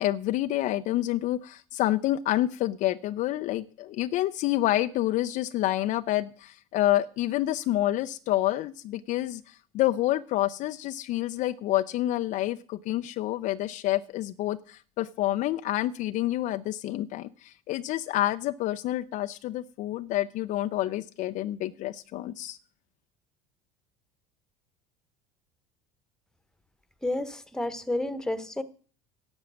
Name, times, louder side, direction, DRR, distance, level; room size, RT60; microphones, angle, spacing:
voice 1, 0.0-22.6, left 14 dB, 55° left, 11 dB, 0.5 m, -28 dB
voice 2, 27.0-28.6, left 1 dB, 5° left, 15 dB, 1.1 m, -30 dB
11.0 x 7.3 x 6.3 m, 0.43 s
hypercardioid pair, 80°, 16 cm